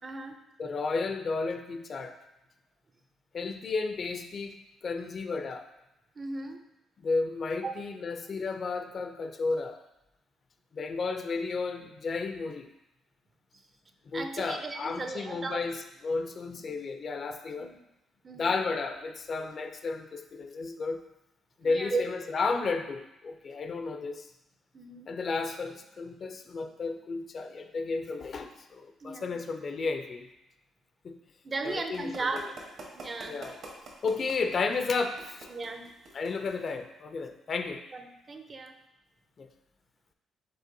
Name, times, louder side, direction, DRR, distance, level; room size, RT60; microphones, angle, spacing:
voice 1, 0.0-0.4 6.2-6.6 7.6-7.7 14.1-15.6 17.6-17.8 18.2-18.5 21.6-22.0 24.7-25.1 29.0-29.3 31.4-32.5 32.9-33.4 35.5-35.9 37.9-38.8, right 3 dB, 35° right, 6 dB, 0.5 m, -36 dB
voice 2, 0.6-2.2 3.3-4.6 4.8-5.7 7.0-9.8 10.7-12.7 14.1-15.8 16.0-17.7 18.4-21.0 21.6-24.3 25.1-30.3 31.0-31.2 31.6-32.4 33.2-33.6 34.0-35.5 36.1-37.8 39.4-39.5, left 4 dB, 50° left, 6 dB, 0.4 m, -33 dB
sound 1, 31.7-36.7, right 2 dB, 70° right, 1.2 m, -46 dB
5.3 x 3.7 x 2.6 m, 0.87 s
cardioid pair, 90°, 0 cm